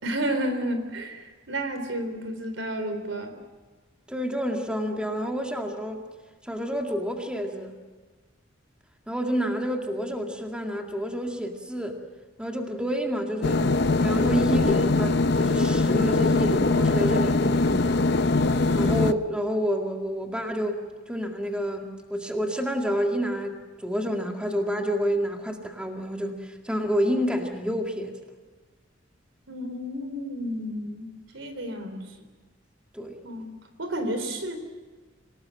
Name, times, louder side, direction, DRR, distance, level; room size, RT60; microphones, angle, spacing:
voice 1, 0.0-3.3 29.5-32.2 33.2-33.5 33.8-34.6, right 1 dB, 80° right, 8 dB, 3.8 m, -31 dB
voice 2, 4.1-6.0 6.4-7.7 9.1-12.0 12.4-13.7 14.0-17.9 18.7-23.6 23.8-28.1 32.9-33.2, equal, 5° right, 2 dB, 2.1 m, -29 dB
sound 1, 13.4-19.1, left 3 dB, 60° left, 0.8 m, -22 dB
26.0 x 19.0 x 7.7 m, 1.4 s
head